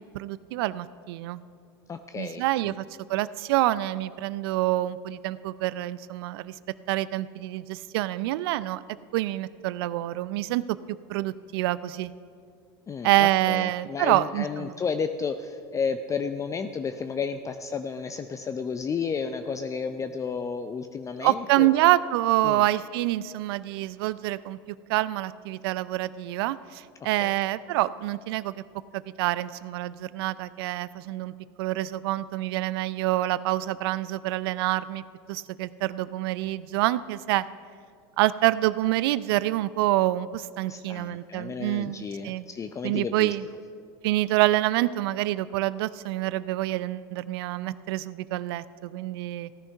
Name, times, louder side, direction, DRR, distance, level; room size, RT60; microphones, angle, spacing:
voice 1, 0.1-1.4 2.1-2.8 3.1-6.5 6.9-8.8 9.1-10.8 11.1-12.1 13.0-14.7 21.2-24.6 24.9-28.5 28.9-37.4 38.2-42.5 42.8-43.5 44.0-49.5, right 16 dB, 75° right, 17 dB, 0.5 m, -27 dB
voice 2, 1.9-2.7 12.9-21.7 22.4-22.6 27.0-27.3 40.7-43.3, left 5 dB, 25° left, 9 dB, 0.5 m, -32 dB
15.5 x 9.8 x 5.5 m, 2.3 s
hypercardioid pair, 95°, 13 cm